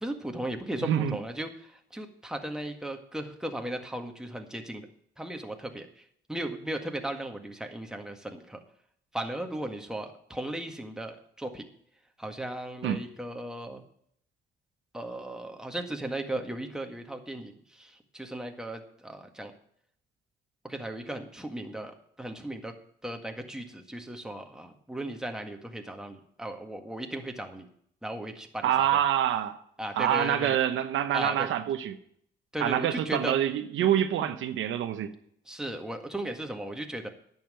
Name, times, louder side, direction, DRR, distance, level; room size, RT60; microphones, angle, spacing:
voice 1, 0.0-4.9 5.2-5.9 6.3-8.6 9.1-11.6 12.2-13.8 14.9-17.5 17.8-19.5 20.6-22.7 23.0-27.7 28.0-29.0 29.8-30.6 31.1-31.5 32.5-33.4 35.5-37.1, right 1 dB, 5° right, 1.8 m, -36 dB
voice 2, 0.8-1.2 12.8-13.0 28.6-29.6 29.9-32.0 32.6-35.1, right 10 dB, 80° right, 1.0 m, -26 dB
10.5 x 7.4 x 7.7 m
cardioid pair, 90°, 20 cm